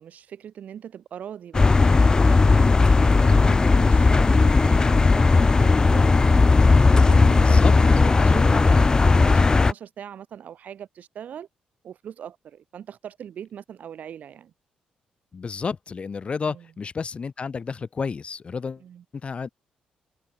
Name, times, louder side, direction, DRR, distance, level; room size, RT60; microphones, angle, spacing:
voice 1, 0.0-6.1 6.7-11.5 11.8-14.5 16.5-16.7 18.8-19.0, right 9 dB, 70° right, 7.4 m, -39 dB
sound 1, 1.5-9.7, left 3 dB, 25° left, 0.4 m, -17 dB
voice 2, 7.4-7.7 15.3-18.8 19.2-19.5, left 5 dB, 45° left, 3.7 m, -31 dB
cardioid pair, 75°, 3 cm